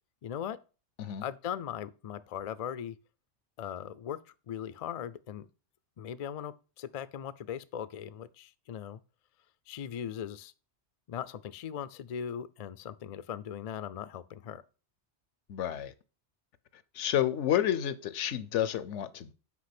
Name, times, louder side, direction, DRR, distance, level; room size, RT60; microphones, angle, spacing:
voice 1, 0.2-0.6 1.2-3.0 3.6-4.2 4.5-5.5 6.0-9.0 9.7-10.5 11.1-14.6, left 9 dB, 65° left, 0.3 m, -39 dB
voice 2, 15.5-15.9 16.9-19.3, left 11 dB, 90° left, 1.0 m, -30 dB
6.0 x 5.1 x 5.9 m
omnidirectional pair, 1.2 m